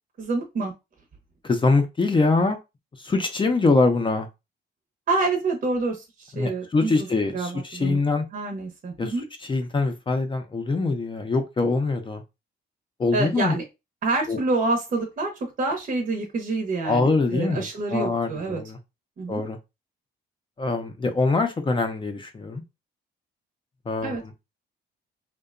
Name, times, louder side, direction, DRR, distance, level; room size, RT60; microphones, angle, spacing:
voice 1, 0.2-0.7 5.1-7.1 7.3-8.0 8.3-9.2 13.1-13.6 14.0-18.6 19.2-19.4 24.0-24.2, right 3 dB, 45° right, 1 dB, 0.7 m, -27 dB
voice 2, 1.4-2.6 3.0-4.3 6.3-8.3 9.0-9.1 9.4-12.2 13.0-13.6 14.3-14.4 16.8-18.8 19.3-19.6 20.6-22.6 23.9-24.2, left 3 dB, 25° left, 5 dB, 0.5 m, -23 dB
2.8 x 2.1 x 2.4 m, 0.24 s
cardioid pair, 90°, 20 cm